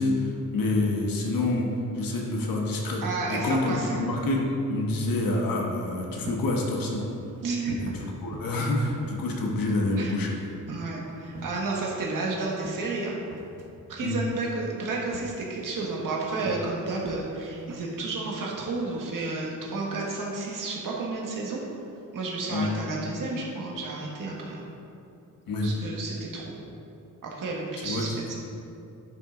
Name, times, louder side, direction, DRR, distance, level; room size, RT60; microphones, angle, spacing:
voice 1, 0.0-1.7 1.9-3.0 3.3-7.0 7.8-10.4 14.0-14.2 22.5-22.7 25.5-25.7 27.8-28.0, left 2 dB, 85° left, -1 dB, 1.6 m, -27 dB
voice 2, 3.0-4.0 7.4-7.7 8.0-8.1 10.0-10.1 10.7-13.1 13.9-21.6 22.1-24.6 25.6-26.4 27.2-28.3, right 3 dB, 70° right, -3 dB, 1.7 m, -31 dB
sound 1, 5.8-19.3, right 2 dB, 50° right, 0.9 m, -46 dB
10.5 x 5.9 x 3.9 m, 2.7 s
wide cardioid pair, 135°, 34 cm